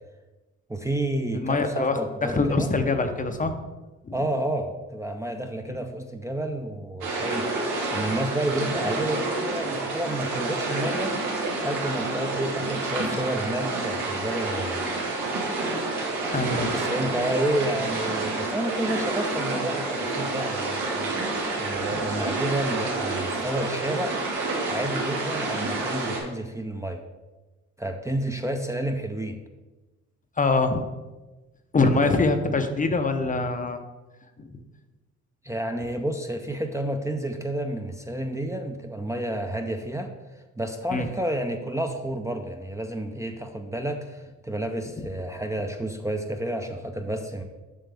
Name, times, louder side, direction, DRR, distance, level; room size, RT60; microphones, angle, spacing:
voice 1, 0.7-2.7 4.1-7.5 7.9-11.2 11.6-14.8 16.7-21.2 21.6-24.2 24.7-27.0 27.8-29.4 32.0-32.1 35.4-40.1 40.6-47.4, right 1 dB, 10° right, 4 dB, 0.5 m, -30 dB
voice 2, 1.3-3.6 4.0-4.1 16.3-16.8 30.4-30.8 31.7-33.8 34.5-34.6 40.9-41.1, left 3 dB, 25° left, 7 dB, 0.6 m, -24 dB
sound 1, 7.0-26.2, right 2 dB, 90° right, 1.7 m, -29 dB
7.7 x 5.6 x 3.4 m, 1.1 s
cardioid pair, 90°, 30 cm